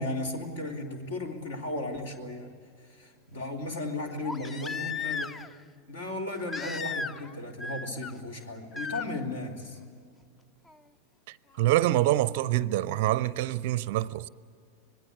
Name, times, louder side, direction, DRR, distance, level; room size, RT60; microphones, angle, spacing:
voice 1, 0.0-2.5 2.9-5.4 5.9-9.8, left 2 dB, 60° left, 3.4 m, -35 dB
Crying sobbing, 1.5-1.6 4.2-5.6 6.5-7.3 7.6-8.1 8.7-9.1 10.7-10.8, left 5 dB, 15° left, 0.6 m, -35 dB
voice 2, 11.3-14.3, right 14 dB, 50° right, 0.5 m, -26 dB
26.0 x 20.5 x 8.6 m
figure-of-eight pair, 90°, 0 cm